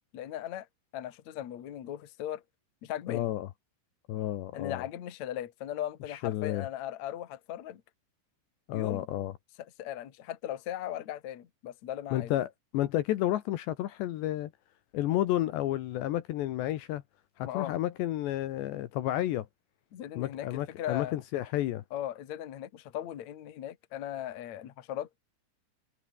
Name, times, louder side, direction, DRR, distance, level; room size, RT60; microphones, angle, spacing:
voice 1, 0.1-0.7 0.9-2.4 2.8-3.3 4.5-7.8 8.7-9.1 9.8-12.3 17.4-17.7 19.9-21.1 21.9-25.2, left 11 dB, 50° left, 2.4 m, -38 dB
voice 2, 3.1-3.5 4.1-4.8 6.1-6.7 8.7-9.3 12.1-14.5 14.9-17.0 17.4-19.5 20.2-21.8, left 14 dB, 70° left, 3.1 m, -31 dB
omnidirectional pair, 5.6 m